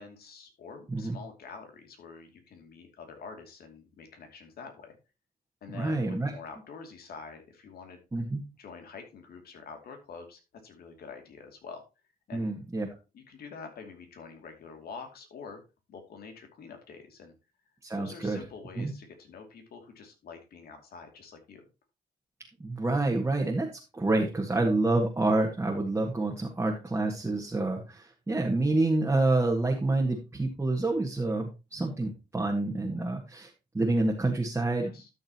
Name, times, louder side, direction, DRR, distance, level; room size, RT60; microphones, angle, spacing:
voice 1, 0.0-5.0 5.6-8.0 8.6-11.8 12.3-12.6 13.1-15.6 15.9-17.3 17.9-21.7 34.8-35.1, left 5 dB, 70° left, 4 dB, 2.6 m, -46 dB
voice 2, 5.7-6.3 8.1-8.4 12.3-12.9 17.8-18.4 18.8-18.9 22.6-34.9, right 2 dB, 15° right, -1 dB, 1.8 m, -28 dB
12.5 x 6.5 x 3.0 m, 0.28 s
cardioid pair, 95°, 16 cm